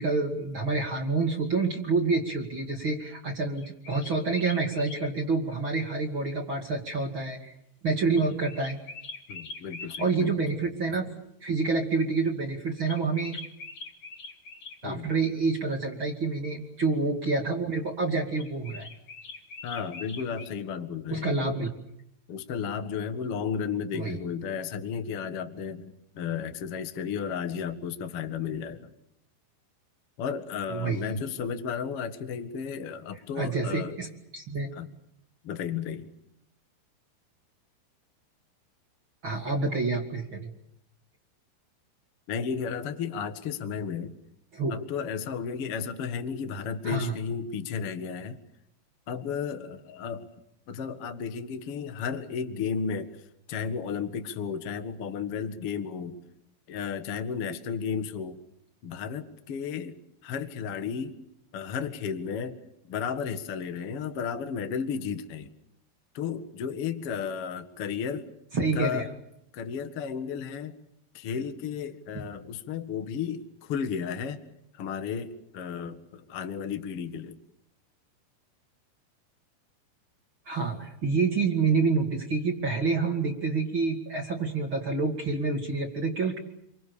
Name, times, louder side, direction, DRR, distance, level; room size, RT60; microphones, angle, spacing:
voice 1, 0.0-7.5 7.8-8.8 10.0-11.1 11.4-13.4 14.8-18.9 21.1-21.7 23.9-24.2 30.7-31.2 33.3-34.7 39.2-40.5 44.5-44.8 46.8-47.1 68.5-69.0 80.5-86.4, right 4 dB, 35° right, 1 dB, 2.3 m, -28 dB
sound 1, 3.6-5.0 8.1-10.1 12.9-14.8 18.4-20.5, left 3 dB, 45° left, 1.5 m, -43 dB
voice 2, 9.3-10.4 14.8-15.1 19.6-21.5 22.3-28.9 30.2-33.9 34.7-34.9 35.4-36.1 42.3-44.1 44.7-48.4 49.1-50.3 50.7-53.2 53.5-56.2 56.7-58.4 58.8-60.0 60.2-61.2 61.5-62.6 62.9-65.5 66.1-68.3 68.7-69.1 69.5-70.7 71.1-74.4 74.7-77.4, left 6 dB, 75° left, 8 dB, 1.3 m, -33 dB
29.5 x 24.0 x 7.0 m, 0.78 s
omnidirectional pair, 5.5 m